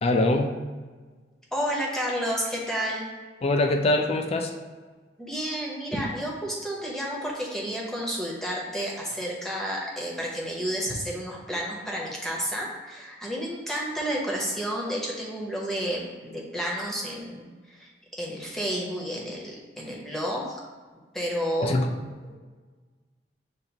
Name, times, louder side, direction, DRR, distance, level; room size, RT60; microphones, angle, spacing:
voice 1, 0.0-0.5 3.4-4.5 21.6-21.9, left 2 dB, 35° left, 5 dB, 0.4 m, -23 dB
voice 2, 1.5-3.1 5.2-17.9 18.2-20.6 21.1-21.8 22.2-22.4, equal, 5° left, -3 dB, 0.7 m, -31 dB
6.5 x 2.4 x 2.8 m, 1.4 s
head